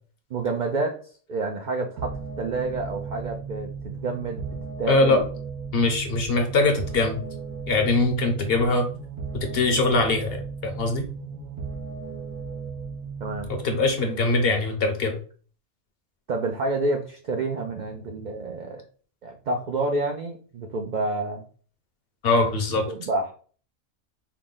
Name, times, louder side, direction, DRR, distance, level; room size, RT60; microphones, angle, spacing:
voice 1, 0.3-1.0 1.3-4.5 4.8-5.2 13.2-13.5 16.3-18.8 19.2-21.4 22.7-23.3, right 2 dB, 65° right, 2 dB, 0.4 m, -29 dB
sound 1, 2.0-14.0, right 5 dB, 85° right, 1.2 m, -36 dB
voice 2, 4.9-5.2 5.7-7.2 7.7-8.9 9.3-11.0 13.5-15.2 22.2-22.8, left 3 dB, 55° left, 5 dB, 0.8 m, -22 dB
4.7 x 2.1 x 3.7 m, 0.42 s
omnidirectional pair, 1.3 m